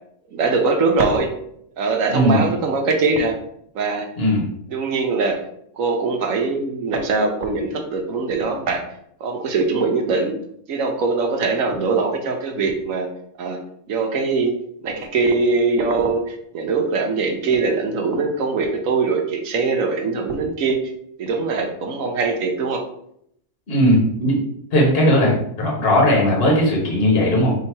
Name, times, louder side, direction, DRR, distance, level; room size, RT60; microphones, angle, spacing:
voice 1, 0.3-1.4 1.8-3.3 3.7-4.1 4.7-5.4 5.8-8.8 9.2-10.4 10.7-13.1 13.4-13.6 13.9-14.6 14.8-20.9 21.2-22.8, right 4 dB, 65° right, 3 dB, 1.1 m, -22 dB
voice 2, 2.1-2.4 4.2-4.4 23.7-24.4 24.7-27.5, equal, 45° left, -3 dB, 1.4 m, -17 dB
3.8 x 2.9 x 4.4 m, 0.71 s
omnidirectional pair, 1.6 m